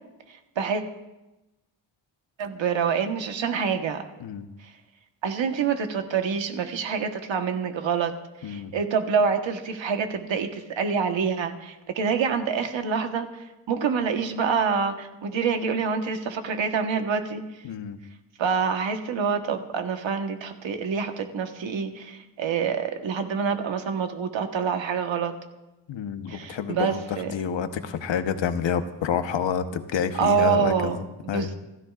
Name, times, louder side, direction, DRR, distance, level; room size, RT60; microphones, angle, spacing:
voice 1, 2.4-4.0 5.2-8.1 8.4-17.4 18.4-25.3 26.3-27.3 30.2-31.0 31.3-31.5, right 6 dB, 70° right, 5 dB, 1.3 m, -26 dB
voice 2, 17.6-18.0 25.9-27.0 27.3-31.5, left 7 dB, 70° left, 9 dB, 1.1 m, -28 dB
27.5 x 13.5 x 2.5 m, 1.0 s
wide cardioid pair, 120°, 47 cm